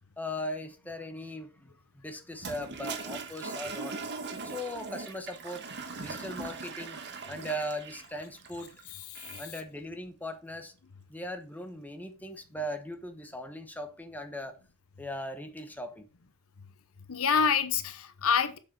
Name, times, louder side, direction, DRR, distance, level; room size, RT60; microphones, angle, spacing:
voice 1, 0.2-4.0 4.4-5.6 6.0-7.0 7.3-8.7 9.4-10.7 11.1-14.5 15.0-16.1, equal, 10° left, 1.0 m, -39 dB
Toilet flush, 2.3-9.6, right 4 dB, 50° right, 1.4 m, -40 dB
voice 2, 17.1-18.6, left 6 dB, 65° left, 0.9 m, -27 dB
7.2 x 6.4 x 4.7 m
head